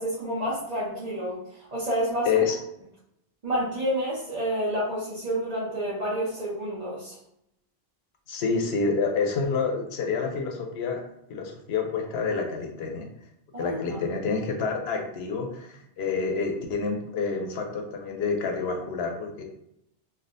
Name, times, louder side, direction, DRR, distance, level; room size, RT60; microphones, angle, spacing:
voice 1, 0.0-2.4 3.4-7.2 13.5-14.1, equal, 40° right, -9 dB, 0.9 m, -29 dB
voice 2, 2.3-2.6 8.3-11.0 11.3-13.1 13.6-19.4, left 5 dB, 85° left, 3 dB, 0.8 m, -28 dB
3.3 x 2.3 x 2.6 m, 0.77 s
omnidirectional pair, 1.0 m